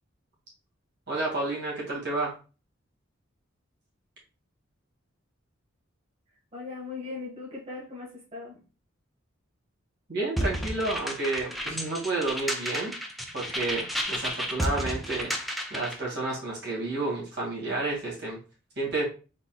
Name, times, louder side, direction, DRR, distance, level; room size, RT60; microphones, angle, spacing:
voice 1, 1.1-2.3 10.1-12.9 13.3-15.3 15.7-18.4 18.8-19.0, right 2 dB, 55° right, -4 dB, 2.1 m, -30 dB
voice 2, 6.5-8.6, left 4 dB, 30° right, -7 dB, 1.5 m, -39 dB
sound 1, 10.4-16.0, equal, ahead, 0.5 m, -32 dB
4.4 x 4.0 x 2.3 m, 0.34 s
head